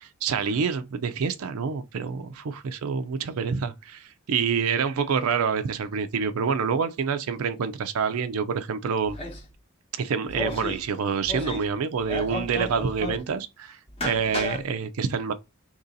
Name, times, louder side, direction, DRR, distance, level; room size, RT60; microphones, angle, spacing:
voice 1, 0.2-9.2 10.0-15.3, right 6 dB, 85° right, 0.4 m, -27 dB
sound 1, 9.0-9.5 10.3-10.8 11.2-11.7 12.0-13.3 13.9-14.6, left 1 dB, 25° left, 0.8 m, -33 dB
2.9 x 2.7 x 3.8 m
head